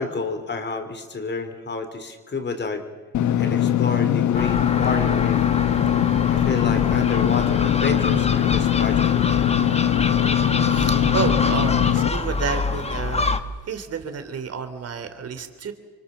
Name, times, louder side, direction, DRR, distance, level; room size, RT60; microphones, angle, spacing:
voice 1, 0.0-2.9 3.4-5.4 6.2-9.3, left 4 dB, 35° left, 8 dB, 4.2 m, -30 dB
Engine / Mechanisms, 3.1-12.1, left 11 dB, 70° left, 1.3 m, -21 dB
Gull seagull, 4.3-13.4, left 3 dB, 20° left, 1.6 m, -27 dB
voice 2, 10.0-10.3 10.7-15.7, right 6 dB, 55° right, 9 dB, 3.5 m, -31 dB
28.0 x 25.0 x 7.5 m, 1.3 s
cardioid pair, 90°, 30 cm